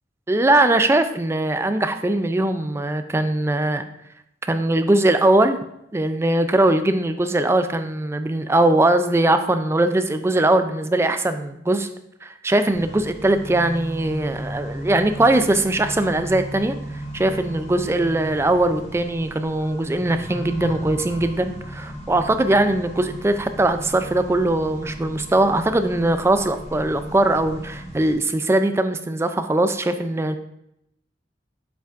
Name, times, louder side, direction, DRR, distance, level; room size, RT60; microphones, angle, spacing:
voice 1, 0.3-3.9 4.5-5.6 5.9-11.9 12.2-16.7 17.1-30.4, right 2 dB, 15° right, 9 dB, 0.4 m, -20 dB
Accelerating revving vroom, 12.7-28.1, right 1 dB, 35° left, 1.3 m, -35 dB
7.1 x 5.8 x 2.5 m, 0.80 s
head